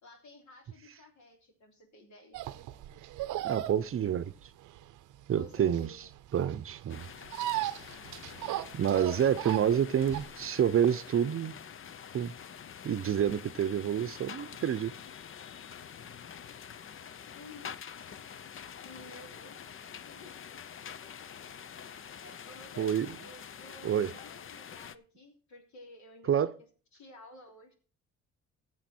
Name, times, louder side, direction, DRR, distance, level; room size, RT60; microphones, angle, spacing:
voice 1, 0.0-2.4 5.3-6.1 9.2-9.3 17.3-17.7 18.8-19.8 20.1-20.3 22.2-26.5 26.9-27.7, left 1 dB, 70° left, 3.3 m, -53 dB
sound 1, 2.3-10.5, right 14 dB, 85° right, 0.7 m, -37 dB
voice 2, 3.4-4.3 5.3-5.9 6.3-7.1 8.7-11.6 12.1-12.3 12.8-14.9 22.8-23.2 23.8-24.1 26.3-26.5, right 9 dB, 45° right, 0.7 m, -28 dB
sound 2, 6.9-25.0, left 8 dB, 45° left, 0.7 m, -46 dB
14.0 x 7.6 x 4.4 m
cardioid pair, 90°, 30 cm